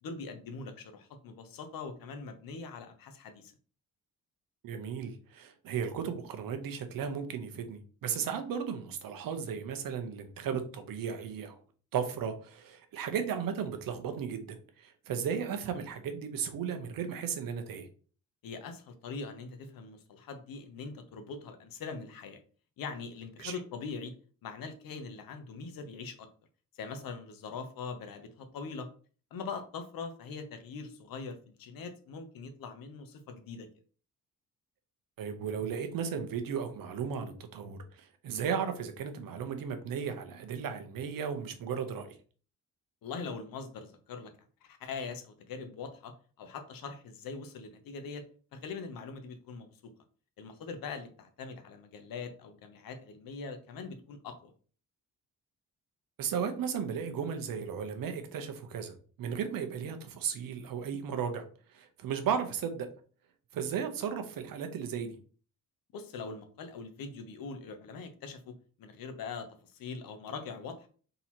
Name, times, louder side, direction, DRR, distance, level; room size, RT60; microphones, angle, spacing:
voice 1, 0.0-3.5 18.4-22.4 22.8-24.1 24.4-26.3 26.8-28.9 29.3-33.7 43.0-44.3 44.6-48.2 48.5-49.9 50.4-54.5 65.9-70.9, left 4 dB, 85° left, 7 dB, 0.9 m, -42 dB
voice 2, 4.6-11.6 11.9-17.9 23.4-23.6 35.2-42.2 56.2-62.9 63.5-65.1, right 7 dB, 85° right, 7 dB, 0.8 m, -35 dB
3.9 x 2.9 x 4.3 m, 0.41 s
wide cardioid pair, 155°, 34 cm